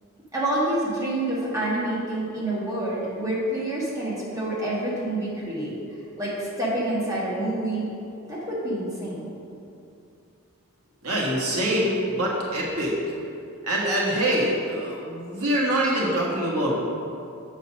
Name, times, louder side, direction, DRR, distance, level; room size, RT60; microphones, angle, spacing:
voice 1, 0.3-5.7 6.2-7.9 8.3-9.2, right 1 dB, 15° right, -7 dB, 1.5 m, -27 dB
voice 2, 11.0-12.9 13.6-16.7, right 1 dB, 90° right, -4 dB, 1.5 m, -24 dB
7.1 x 4.1 x 6.2 m, 2.6 s
head